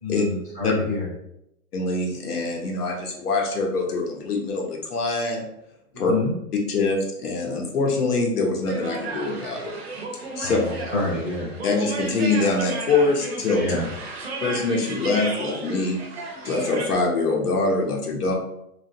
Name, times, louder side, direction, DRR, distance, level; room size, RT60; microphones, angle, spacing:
voice 1, 0.0-1.1 6.1-6.3 10.4-11.5 13.6-13.9, left 2 dB, 15° left, -12 dB, 0.6 m, -27 dB
voice 2, 1.7-5.4 6.0-6.1 6.7-9.7 10.4-10.6 11.6-13.8 14.4-16.0 16.4-18.3, left 3 dB, 85° left, 0 dB, 1.0 m, -24 dB
sound 1, 8.7-16.9, right 3 dB, 45° right, 0.5 m, -34 dB
2.9 x 2.5 x 2.5 m, 0.81 s
hypercardioid pair, 170°, 45 cm